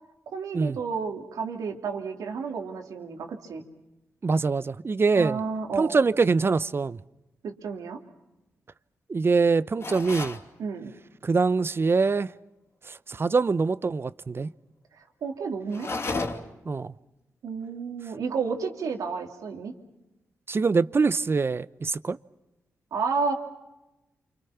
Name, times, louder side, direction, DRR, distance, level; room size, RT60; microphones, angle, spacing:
voice 1, 0.3-3.6 5.2-6.0 7.4-8.0 10.6-10.9 15.2-15.9 17.4-19.7 22.9-23.3, right 5 dB, 80° right, 2.9 m, -31 dB
voice 2, 4.2-5.4 5.8-7.0 9.1-10.4 11.2-12.3 12.9-14.5 16.7-16.9 20.5-22.2, right 4 dB, 40° right, 0.8 m, -24 dB
sound 1, 9.8-10.5 15.7-16.6, left 3 dB, 50° left, 3.0 m, -32 dB
28.5 x 26.0 x 5.9 m
supercardioid pair, 50°, 6 cm